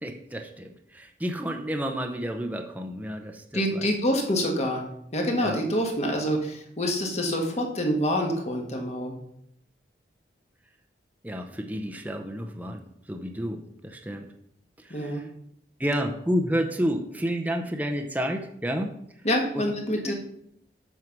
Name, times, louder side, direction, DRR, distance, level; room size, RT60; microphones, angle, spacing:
voice 1, 0.0-3.9 5.4-5.6 11.2-14.3 14.8-15.3 15.8-18.9 19.5-19.6 20.0-20.1, equal, 10° right, 4 dB, 0.7 m, -30 dB
voice 2, 3.5-4.8 5.1-9.1 14.9-15.2 19.2-20.1, equal, 40° left, 1 dB, 1.7 m, -26 dB
7.8 x 5.5 x 6.0 m, 0.73 s
head